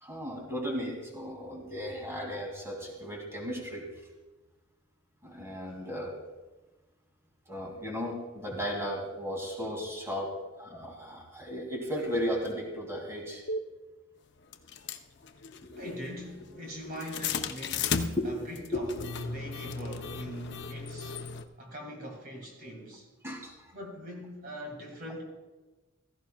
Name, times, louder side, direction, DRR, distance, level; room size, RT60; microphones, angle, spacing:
voice 1, 0.0-3.8 5.2-6.1 7.5-13.4 15.7-15.9 16.6-16.7 18.2-19.1 23.2-23.7, equal, 15° right, 2.4 m, -35 dB
sound 1, 12.4-12.5 13.5-13.6 14.5-21.4, left 5 dB, 60° left, 0.6 m, -35 dB
voice 2, 15.8-18.0 18.2-21.2 21.6-23.1 23.7-25.2, equal, 50° right, 2.0 m, -42 dB
16.0 x 15.0 x 2.3 m
head